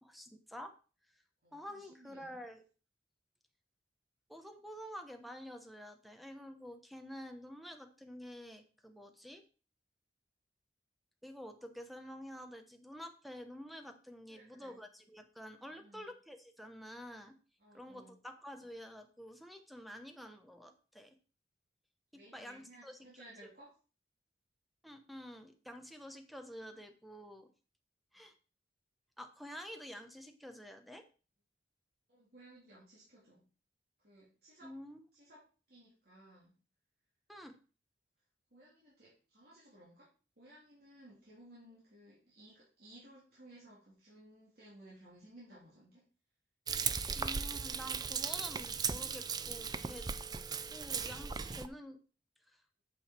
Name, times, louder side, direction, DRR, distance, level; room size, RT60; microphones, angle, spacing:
voice 1, 0.0-0.7 1.5-2.6 4.3-9.4 11.2-17.4 17.7-21.1 22.1-23.0 24.8-27.5 28.1-28.3 29.2-31.0 34.6-35.0 37.3-37.6 47.2-50.1 50.7-52.0 52.5-52.6, equal, ahead, 7 dB, 1.0 m, -49 dB
voice 2, 1.4-2.4 14.3-14.8 15.7-16.0 17.6-18.1 22.1-23.7 32.1-33.4 34.0-34.7 35.1-35.4 35.7-36.5 38.5-40.1 40.4-46.0, right 1 dB, 60° right, -6 dB, 3.3 m, -58 dB
Frying (food), 46.7-51.7, right 6 dB, 25° right, 0.4 m, -37 dB
8.5 x 6.5 x 4.4 m, 0.35 s
head